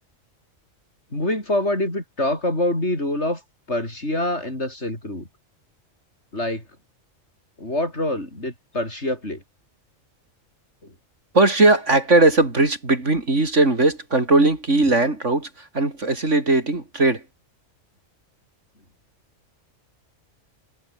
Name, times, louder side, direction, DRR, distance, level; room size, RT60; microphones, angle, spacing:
voice 1, 1.1-3.4 3.7-5.3 6.3-6.6 7.6-9.4 10.8-10.9, left 1 dB, 60° left, 8.1 m, -25 dB
voice 2, 11.3-17.2, right 2 dB, 65° right, 4.3 m, -19 dB
omnidirectional pair, 1.3 m